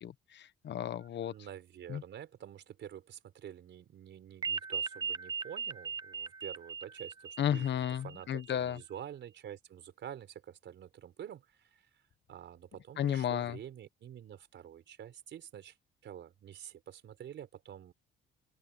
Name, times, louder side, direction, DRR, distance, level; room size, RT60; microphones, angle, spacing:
voice 1, 0.0-1.3 1.9-2.0 7.4-8.8 13.0-13.6, left 10 dB, 60° left, 1.2 m, -33 dB
voice 2, 1.3-11.9 12.3-15.7 16.0-17.9, right 10 dB, 70° right, 4.4 m, -48 dB
sound 1, 4.4-8.5, right 6 dB, 20° right, 0.4 m, -38 dB
open air
cardioid pair, 90°, 20 cm